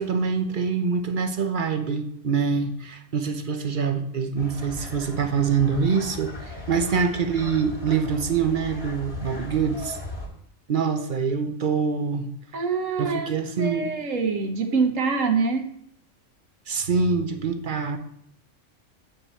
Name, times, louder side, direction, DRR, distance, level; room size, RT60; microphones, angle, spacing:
voice 1, 0.0-10.0 10.7-12.3 13.0-13.9 16.7-18.0, right 5 dB, 45° right, 7 dB, 0.8 m, -25 dB
sound 1, 4.4-10.3, left 2 dB, 50° left, 3.0 m, -38 dB
voice 2, 12.5-13.3 13.6-15.7, right 4 dB, 80° right, 5 dB, 1.5 m, -25 dB
8.5 x 5.3 x 4.2 m, 0.71 s
omnidirectional pair, 1.3 m